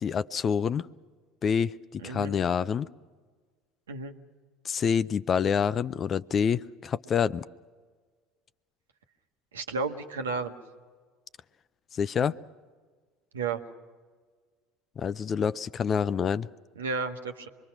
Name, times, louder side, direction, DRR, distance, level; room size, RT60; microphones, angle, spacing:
voice 1, 0.0-0.9 1.4-1.7 2.0-2.9 4.7-7.4 12.0-12.4 15.0-16.5, left 7 dB, 40° left, 17 dB, 0.6 m, -27 dB
voice 2, 2.0-2.3 3.9-4.1 9.5-10.5 13.3-13.6 16.8-17.5, right 4 dB, 85° right, 5 dB, 1.2 m, -32 dB
25.5 x 22.0 x 6.0 m, 1.5 s
hypercardioid pair, 70°, 0 cm